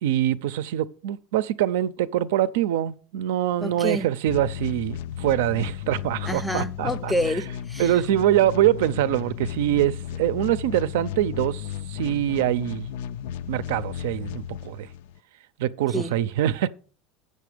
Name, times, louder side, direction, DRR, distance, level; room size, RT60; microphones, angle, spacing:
voice 1, 0.0-7.1 7.8-12.9 13.5-14.9 15.6-16.7, right 12 dB, 90° right, 0.5 m, -24 dB
voice 2, 3.6-4.1 6.3-8.0 15.9-16.2, left 1 dB, ahead, 0.4 m, -28 dB
sound 1, 4.3-15.2, left 10 dB, 80° left, 0.4 m, -34 dB
8.4 x 6.6 x 5.0 m
cardioid pair, 165°, 0 cm